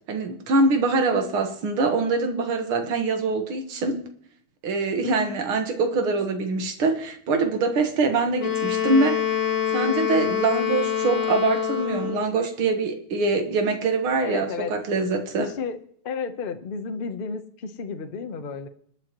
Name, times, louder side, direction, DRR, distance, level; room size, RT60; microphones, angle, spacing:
voice 1, 0.1-4.0 4.6-9.2 9.7-15.5, right 3 dB, 80° right, 6 dB, 2.3 m, -24 dB
Wind instrument woodwind instrument, 8.4-12.3, left 9 dB, 85° left, 2.1 m, -25 dB
voice 2, 14.2-14.7 15.4-15.8 16.0-18.7, left 5 dB, 55° left, 7 dB, 0.6 m, -32 dB
26.0 x 9.6 x 3.0 m, 0.62 s
omnidirectional pair, 2.3 m